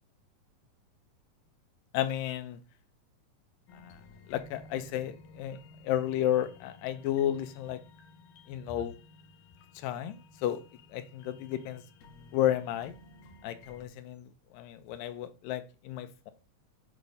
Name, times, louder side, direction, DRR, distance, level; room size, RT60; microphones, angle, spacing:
voice 1, 1.9-2.6 3.8-4.0 4.3-5.6 5.8-7.8 8.5-8.9 9.8-10.6 10.9-11.8 12.3-12.9 13.4-14.3 14.5-16.3, left 11 dB, 85° left, 11 dB, 2.3 m, -32 dB
sound 1, 3.7-13.9, left 3 dB, 70° left, 1.8 m, -55 dB
8.2 x 2.7 x 5.2 m, 0.34 s
omnidirectional pair, 3.9 m